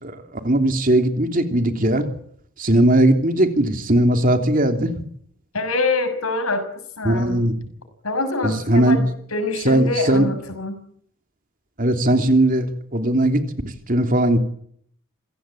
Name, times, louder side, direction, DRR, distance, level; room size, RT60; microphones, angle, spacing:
voice 1, 0.0-2.1 2.6-4.9 7.0-7.5 8.4-9.0 9.6-10.3 11.8-13.4 13.9-14.4, right 1 dB, 40° right, 6 dB, 3.1 m, -18 dB
voice 2, 5.5-6.7 7.0-7.4 8.0-10.8, left 3 dB, 85° left, 9 dB, 6.4 m, -25 dB
27.5 x 17.0 x 8.6 m, 0.67 s
head